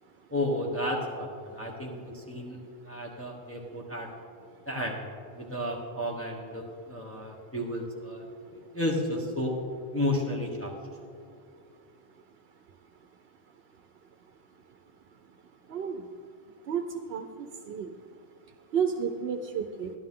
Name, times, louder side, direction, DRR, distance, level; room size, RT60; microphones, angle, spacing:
voice 1, 0.3-4.1 4.6-5.1 5.3-8.2 8.5-9.6 9.9-10.7, left 1 dB, 15° left, -2 dB, 1.1 m, -32 dB
voice 2, 15.7-16.0 16.7-16.8 17.1-17.9 18.7-19.9, right 7 dB, 70° right, 5 dB, 0.8 m, -31 dB
13.5 x 11.5 x 3.7 m, 2.4 s
omnidirectional pair, 1.1 m